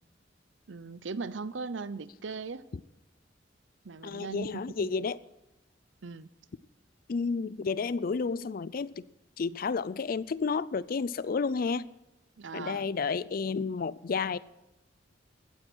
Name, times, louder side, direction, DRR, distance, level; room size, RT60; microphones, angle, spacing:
voice 1, 0.7-2.6 3.8-4.5 4.8-4.9 6.0-6.3 12.4-12.8, right 4 dB, 85° right, 0.7 m, -38 dB
voice 2, 4.0-5.2 7.1-9.0 9.4-11.8 12.5-14.4, left 5 dB, 50° left, 0.4 m, -31 dB
15.0 x 9.9 x 6.1 m
head